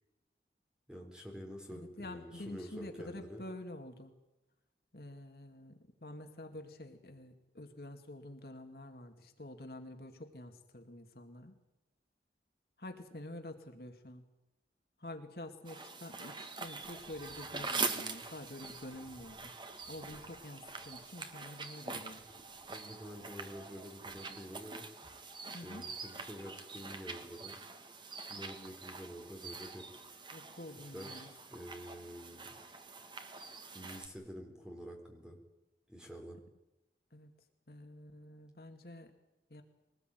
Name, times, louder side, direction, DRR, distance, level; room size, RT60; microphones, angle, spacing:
voice 1, 0.9-3.4 22.7-24.9 25.6-27.6 28.3-29.9 30.9-32.5 33.7-35.4 35.9-36.4, equal, 5° right, 1 dB, 4.6 m, -48 dB
voice 2, 1.7-4.1 4.9-11.6 12.8-14.3 15.0-19.5 19.9-22.3 25.5-25.9 30.3-31.3 37.1-37.3 37.7-39.1 39.5-39.6, left 1 dB, 60° left, 5 dB, 2.4 m, -48 dB
sound 1, 15.6-34.1, right 4 dB, 25° right, 1.8 m, -44 dB
sound 2, 16.8-21.4 21.8-24.2, equal, 35° left, 4.4 m, -66 dB
23.0 x 19.5 x 9.4 m, 0.95 s
head